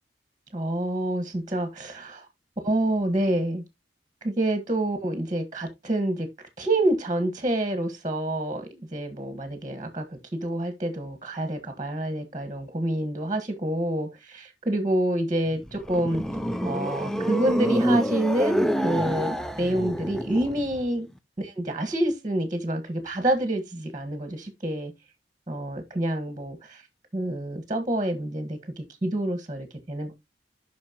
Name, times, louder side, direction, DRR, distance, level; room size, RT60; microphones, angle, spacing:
voice 1, 0.5-2.2 2.6-3.6 4.2-6.3 6.6-16.2 16.6-21.1 21.4-24.9 25.5-26.8 27.1-30.1, right 1 dB, 25° right, 1.5 m, -27 dB
sound 1, 15.5-20.9, right 1 dB, 5° left, 0.4 m, -27 dB
8.7 x 5.9 x 2.9 m
head